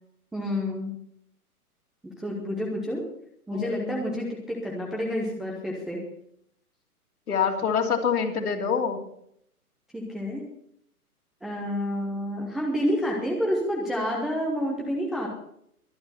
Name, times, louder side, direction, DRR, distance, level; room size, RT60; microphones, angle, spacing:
voice 1, 0.3-0.9 2.0-3.0 3.5-6.0 9.9-10.4 11.4-15.3, equal, ahead, -3 dB, 0.4 m, -29 dB
voice 2, 3.5-4.1 7.3-9.0, left 6 dB, 70° left, 1 dB, 3.2 m, -26 dB
22.5 x 8.7 x 4.3 m, 0.70 s
hypercardioid pair, 125°, 45 cm